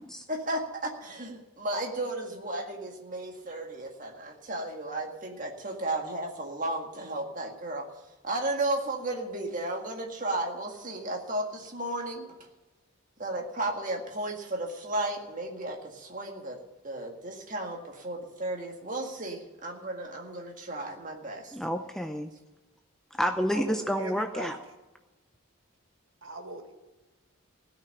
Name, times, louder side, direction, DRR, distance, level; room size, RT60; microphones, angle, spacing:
voice 1, 0.3-7.9 8.2-12.3 13.2-21.6, right 1 dB, 35° right, 2 dB, 1.9 m, -34 dB
voice 2, 21.5-22.3 23.1-24.6, equal, ahead, 5 dB, 0.5 m, -29 dB
voice 3, 23.5-24.5 26.2-26.7, right 1 dB, 65° right, 4 dB, 1.9 m, -40 dB
16.5 x 6.0 x 10.0 m, 1.1 s
head